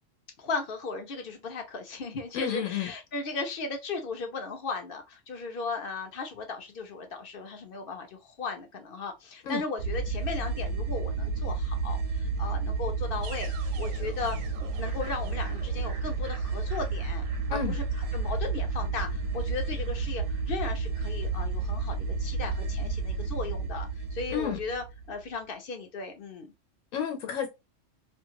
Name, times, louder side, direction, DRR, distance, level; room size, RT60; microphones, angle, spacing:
voice 1, 0.4-17.2 17.5-17.8 18.1-26.5, left 4 dB, 55° left, 0.7 m, -36 dB
voice 2, 2.3-2.9 9.4-9.6 17.5-17.8 24.3-24.6 26.9-27.5, left 8 dB, 85° left, 1.0 m, -31 dB
sound 1, 9.8-25.1, right 4 dB, 80° right, 1.1 m, -31 dB
2.5 x 2.4 x 2.8 m
omnidirectional pair, 1.3 m